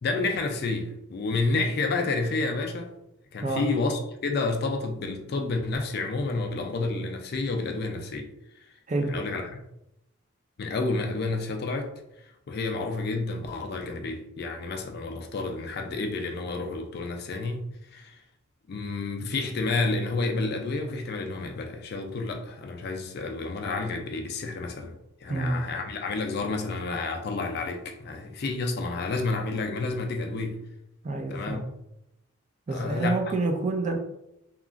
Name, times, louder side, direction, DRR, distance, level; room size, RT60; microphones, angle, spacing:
voice 1, 0.0-2.9 3.3-8.3 9.1-9.6 10.6-11.9 12.5-18.2 18.7-24.9 25.2-30.6 31.3-31.6 32.7-33.2, left 3 dB, 50° left, 0.4 m, -30 dB
voice 2, 25.3-25.6 31.0-31.6 32.7-34.0, right 2 dB, 35° right, 0.4 m, -27 dB
2.9 x 2.4 x 2.4 m
head